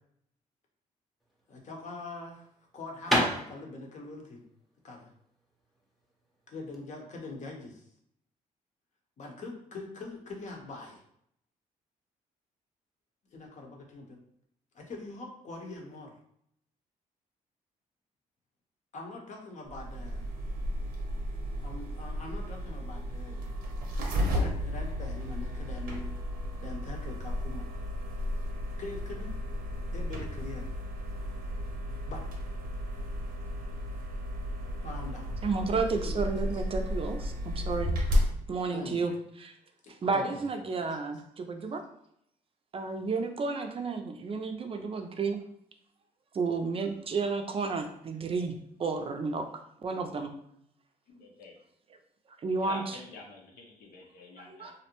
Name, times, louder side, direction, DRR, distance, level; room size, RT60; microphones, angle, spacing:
sound 1, 1.2-6.8, equal, ahead, 0.6 m, -33 dB
voice 1, 1.5-2.5 2.7-4.4 4.8-5.1 6.5-7.8 9.2-11.0 13.3-14.2 14.7-16.1 18.9-20.3 21.6-23.6 24.3-26.1 26.6-27.7 28.8-29.3 29.9-30.7 32.1-32.2 34.8-35.3 35.9-36.1 36.5-36.6 38.7-39.1 39.8-40.5, left 2 dB, 55° left, 1 dB, 0.7 m, -43 dB
sound 2, 19.7-38.3, equal, 80° right, 0.7 m, -33 dB
voice 2, 35.4-38.0 38.5-39.1 39.4-39.5 39.9-41.8 42.7-45.4 46.3-49.5 49.8-50.3 52.4-53.0 54.5-54.7, right 4 dB, 40° right, 5 dB, 0.4 m, -32 dB
voice 3, 51.1-51.5 52.6-54.7, left 3 dB, 85° left, 0 dB, 0.7 m, -47 dB
2.5 x 2.1 x 2.9 m, 0.71 s
cardioid pair, 75°, 15 cm